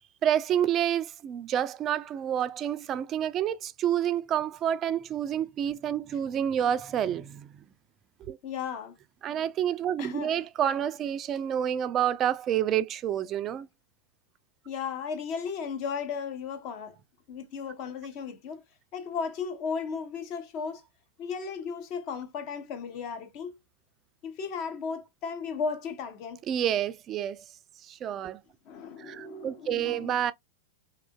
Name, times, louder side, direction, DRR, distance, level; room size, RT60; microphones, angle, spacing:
voice 1, 0.2-7.5 8.3-8.4 9.2-13.7 26.5-27.4 27.8-28.4 29.0-30.3, right 10 dB, 35° right, 0.3 m, -28 dB
voice 2, 8.4-9.0 10.0-10.4 14.7-16.9 17.3-18.6 18.9-20.8 21.2-23.5 24.2-26.4 28.7-30.1, left 6 dB, 45° left, 0.7 m, -35 dB
2.9 x 2.4 x 2.3 m
hypercardioid pair, 100°, 0 cm